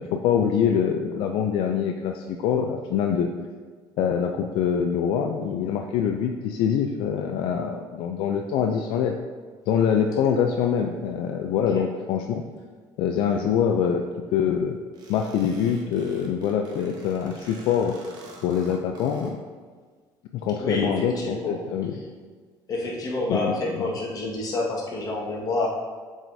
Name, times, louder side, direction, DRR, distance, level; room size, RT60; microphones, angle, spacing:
voice 1, 0.0-3.3 4.0-9.1 9.7-12.4 13.0-14.0 14.3-14.8 15.1-18.0 18.4-19.4 20.3-22.0 23.3-23.8, left 8 dB, 75° left, 3 dB, 0.4 m, -24 dB
sound 1, 14.9-19.3, right 2 dB, 50° right, 1.4 m, -48 dB
voice 2, 20.6-21.6 21.9-22.1 22.7-25.7, left 2 dB, 45° left, -3 dB, 1.5 m, -29 dB
7.4 x 4.8 x 2.7 m, 1.5 s
cardioid pair, 115°, 9 cm